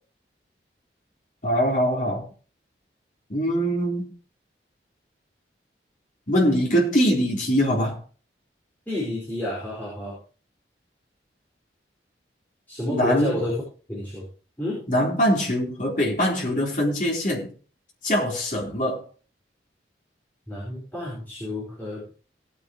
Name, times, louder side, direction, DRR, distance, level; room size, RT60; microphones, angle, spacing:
voice 1, 1.4-2.3 3.3-4.1 6.3-8.0 12.9-13.4 14.9-17.5 18.0-19.1, equal, 45° left, 4.1 m, -23 dB
voice 2, 8.9-10.2 12.7-13.6 13.9-14.3 14.6-14.8 20.5-22.2, left 1 dB, 10° left, 5.0 m, -30 dB
18.5 x 8.9 x 3.2 m
head